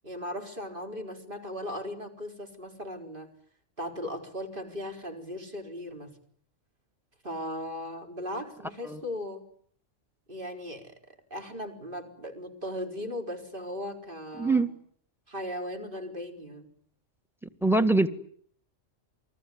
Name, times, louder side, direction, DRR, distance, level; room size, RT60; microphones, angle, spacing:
voice 1, 0.0-3.3 3.8-6.2 7.2-9.4 10.3-14.6 15.3-16.7, left 1 dB, 45° right, 4 dB, 4.6 m, -37 dB
voice 2, 17.6-18.1, right 2 dB, ahead, 12 dB, 1.6 m, -23 dB
28.5 x 21.0 x 9.5 m, 0.63 s
omnidirectional pair, 1.3 m